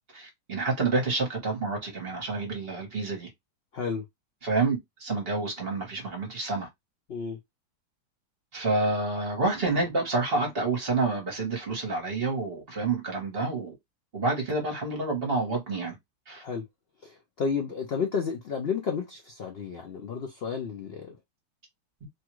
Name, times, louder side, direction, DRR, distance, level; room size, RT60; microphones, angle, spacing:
voice 1, 0.1-3.3 4.4-6.7 8.5-13.7 14.1-15.9 16.3-16.4, right 3 dB, 40° right, 1.1 m, -28 dB
voice 2, 3.7-4.0 7.1-7.4 16.4-16.6 17.0-21.2, left 6 dB, 80° left, 0.5 m, -32 dB
3.0 x 2.4 x 2.9 m
omnidirectional pair, 1.8 m